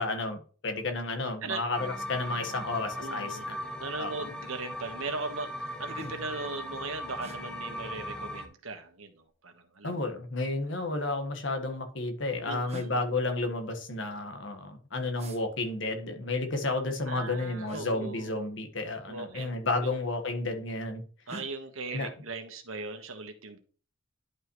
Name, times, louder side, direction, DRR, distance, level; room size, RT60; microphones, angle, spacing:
voice 1, 0.0-3.6 4.0-4.3 9.8-21.0 21.9-22.1, left 2 dB, 65° left, 6 dB, 1.6 m, -32 dB
sound 1, 1.7-8.5, left 1 dB, 5° left, 1.0 m, -38 dB
voice 2, 3.0-10.0 12.4-13.0 17.1-18.3 19.1-19.9 21.3-23.6, right 3 dB, 90° right, 7 dB, 1.4 m, -39 dB
sound 2, 4.3-4.5 5.1-5.2 5.5-6.4 7.2-7.4 8.6-9.3 10.4-11.3 12.2-12.3 12.7-12.9 15.2-15.4 17.6-17.9 19.2-19.5 19.8-20.4 21.3-21.5, right 1 dB, 30° right, 1.2 m, -46 dB
11.0 x 5.6 x 3.1 m, 0.40 s
head